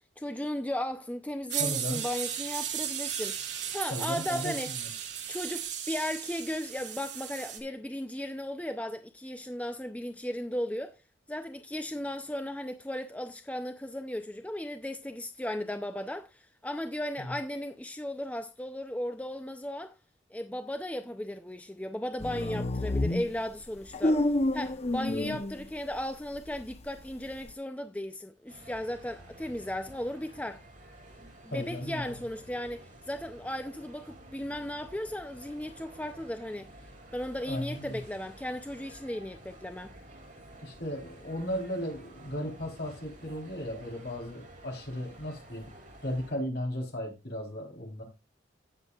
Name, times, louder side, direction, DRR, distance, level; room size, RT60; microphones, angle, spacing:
voice 1, 0.2-4.7 5.3-10.9 11.3-19.9 20.3-24.2 24.5-30.6 31.4-36.7 37.1-39.9, left 1 dB, 10° left, 0.5 m, -36 dB
sound 1, 1.5-7.6, right 10 dB, 65° right, 2.4 m, -35 dB
voice 2, 1.6-2.0 3.9-4.9 17.2-17.3 25.1-25.4 31.5-32.2 37.4-38.0 40.6-45.7 46.0-48.0, equal, 60° left, 3.7 m, -36 dB
sound 2, 22.2-26.0 26.3-27.5, left 1 dB, 35° left, 0.8 m, -29 dB
sound 3, 28.5-46.3, right 1 dB, 45° right, 7.3 m, -51 dB
17.0 x 6.9 x 2.4 m
head